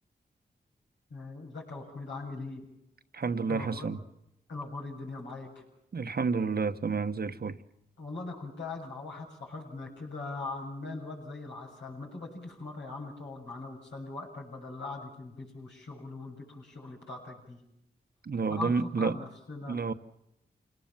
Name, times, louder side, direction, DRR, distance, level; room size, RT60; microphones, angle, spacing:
voice 1, 1.1-2.6 3.5-3.9 4.5-5.6 8.0-17.6 18.5-19.8, left 3 dB, 90° left, -3 dB, 7.5 m, -40 dB
voice 2, 3.1-4.0 5.9-7.6 18.2-19.2 19.7-19.9, right 4 dB, 60° right, 10 dB, 1.2 m, -30 dB
27.5 x 19.0 x 7.4 m, 0.83 s
cardioid pair, 45°, 18 cm